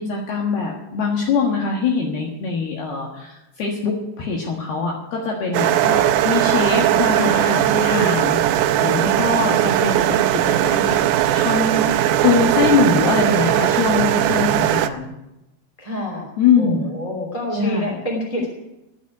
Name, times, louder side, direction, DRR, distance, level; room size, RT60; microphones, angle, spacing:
voice 1, 0.0-5.7 6.2-11.0 11.3-15.1 16.4-16.9 17.6-18.0, left 5 dB, 65° left, -1 dB, 3.3 m, -22 dB
sound 1, 5.5-14.9, right 12 dB, 80° right, 2.6 m, -18 dB
voice 2, 5.7-6.1 9.0-10.1 15.8-16.3 16.6-18.5, left 1 dB, 10° left, -2 dB, 2.2 m, -28 dB
15.5 x 7.3 x 9.6 m, 0.92 s
omnidirectional pair, 5.4 m